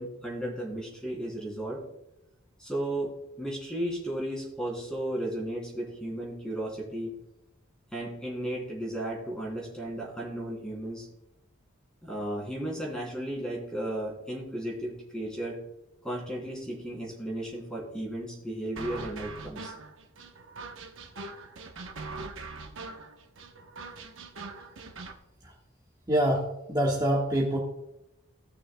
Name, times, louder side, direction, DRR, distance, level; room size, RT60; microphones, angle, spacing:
voice 1, 0.0-1.8 2.6-7.1 7.9-11.1 12.0-15.6 16.0-19.7, right 1 dB, 5° left, -3 dB, 3.0 m, -34 dB
sound 1, 18.8-25.2, right 3 dB, 65° right, 0.9 m, -42 dB
voice 2, 26.1-27.6, right 1 dB, 20° right, -5 dB, 1.3 m, -26 dB
18.0 x 6.2 x 2.2 m, 0.90 s
head